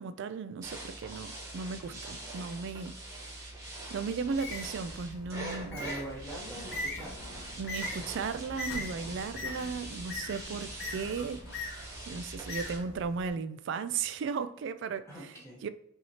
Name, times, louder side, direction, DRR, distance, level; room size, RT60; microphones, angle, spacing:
voice 1, 0.0-3.5 3.9-5.8 7.6-11.4 12.1-15.3 15.6-15.7, right 5 dB, 60° right, 0.3 m, -36 dB
sound 1, 0.6-12.8, right 1 dB, 15° right, 1.2 m, -43 dB
Bird, 4.2-13.3, left 2 dB, 55° left, 0.9 m, -42 dB
voice 2, 5.7-7.4 15.1-15.6, right 1 dB, 15° left, 1.1 m, -43 dB
sound 2, 6.5-11.7, left 1 dB, 90° left, 0.7 m, -50 dB
5.5 x 2.9 x 2.8 m
head